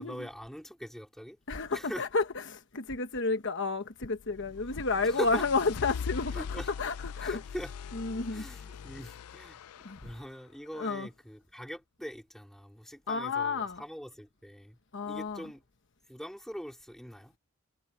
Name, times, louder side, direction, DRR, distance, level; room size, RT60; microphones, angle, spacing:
voice 1, 0.0-1.4 1.7-2.1 5.0-5.5 6.3-6.7 7.2-7.7 8.3-14.8 15.0-15.6 16.1-17.3, equal, ahead, 3.6 m, -42 dB
voice 2, 1.5-7.4 7.9-8.4 9.8-10.0 10.8-11.1 13.1-13.8 14.9-15.5, left 4 dB, 55° left, 1.1 m, -31 dB
sound 1, 4.1-10.2, left 6 dB, 80° left, 0.4 m, -41 dB
head